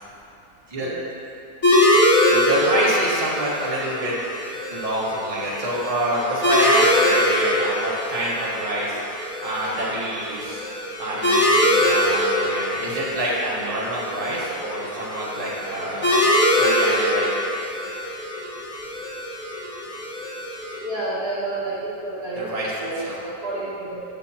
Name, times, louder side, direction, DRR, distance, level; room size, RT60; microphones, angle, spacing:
sound 1, 1.6-20.8, left 1 dB, 50° left, 1.6 m, -23 dB
voice 1, 2.3-4.1 4.7-9.0 9.4-10.6 11.0-16.2 16.5-17.3 22.4-23.2, right 1 dB, 25° right, -6 dB, 1.3 m, -26 dB
voice 2, 20.8-24.0, right 2 dB, 45° right, -10 dB, 1.3 m, -30 dB
8.5 x 8.0 x 2.8 m, 2.8 s
omnidirectional pair, 1.6 m